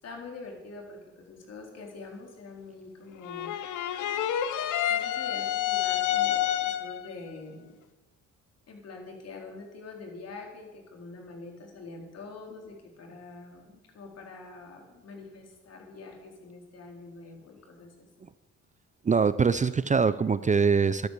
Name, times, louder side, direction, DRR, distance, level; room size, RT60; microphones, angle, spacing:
voice 1, 0.0-3.5 4.9-7.7 8.7-18.1, left 3 dB, 55° left, 1 dB, 4.3 m, -45 dB
sound 1, 3.2-7.1, left 11 dB, 80° left, 1.0 m, -28 dB
voice 2, 19.0-21.1, right 5 dB, 25° right, 15 dB, 0.5 m, -23 dB
13.0 x 12.0 x 6.8 m, 1.1 s
cardioid pair, 90°, 30 cm